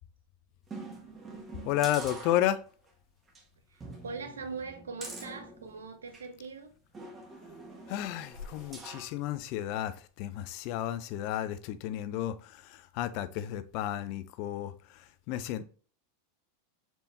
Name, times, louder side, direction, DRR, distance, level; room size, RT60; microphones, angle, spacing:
sound 1, 0.7-2.9 3.3-3.4 3.8-6.3 6.9-9.1 9.6-9.7, right 3 dB, 25° right, 1.3 m, -46 dB
voice 1, 1.6-2.6 7.9-15.6, left 12 dB, 55° left, 0.4 m, -32 dB
voice 2, 3.7-6.8, right 4 dB, 90° right, 0.7 m, -41 dB
4.3 x 3.4 x 2.6 m
hypercardioid pair, 100°, 0 cm